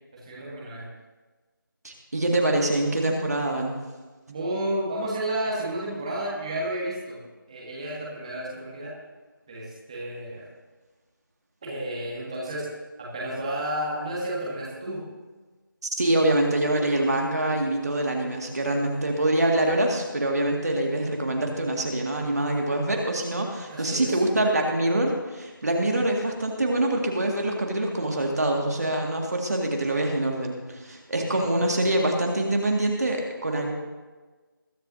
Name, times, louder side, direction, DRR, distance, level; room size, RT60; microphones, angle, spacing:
voice 1, 0.1-0.9 4.3-7.2 7.5-8.9 9.5-10.5 11.6-12.7 13.0-15.0 23.6-24.2 31.3-31.6, right 1 dB, 15° right, -5 dB, 1.9 m, -31 dB
voice 2, 1.8-3.7 16.0-33.7, right 1 dB, 45° right, 1 dB, 2.0 m, -25 dB
21.5 x 11.5 x 2.8 m, 1.3 s
figure-of-eight pair, 165°, 12 cm